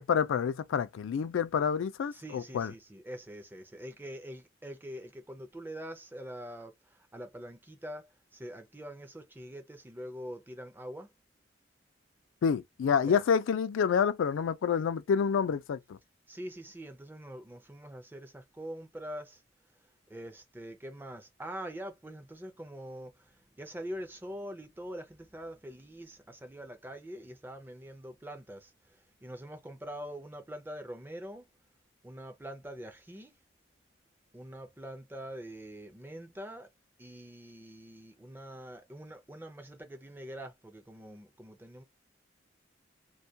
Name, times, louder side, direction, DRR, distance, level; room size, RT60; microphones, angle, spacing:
voice 1, 0.0-2.7 12.4-16.0, left 7 dB, 85° left, 0.3 m, -28 dB
voice 2, 2.1-6.7 7.1-11.1 13.0-13.2 16.3-19.4 20.1-23.1 23.6-28.7 29.2-31.4 32.0-33.3 34.3-36.7 37.0-41.8, equal, 10° right, 0.4 m, -44 dB
2.3 x 2.2 x 2.6 m
head